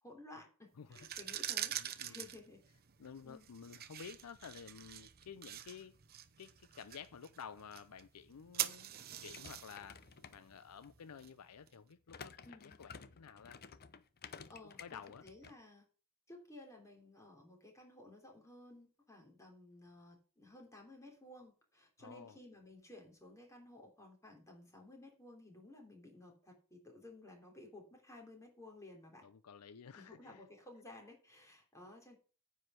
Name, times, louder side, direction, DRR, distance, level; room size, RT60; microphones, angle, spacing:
voice 1, 0.0-2.6 3.2-3.5 12.4-12.8 14.5-15.8 16.3-29.3 29.9-32.2, left 2 dB, 15° left, 3.2 m, -56 dB
sound 1, 0.9-11.7, right 11 dB, 45° right, 0.7 m, -45 dB
voice 2, 1.7-2.2 3.0-6.0 6.4-8.9 9.2-10.0 10.3-12.3 12.6-13.6 14.6-15.2 22.0-22.4 29.2-30.5, left 7 dB, 85° left, 0.5 m, -52 dB
sound 2, 9.2-10.9 12.1-15.5, left 6 dB, 45° left, 0.7 m, -53 dB
9.8 x 4.8 x 7.7 m
head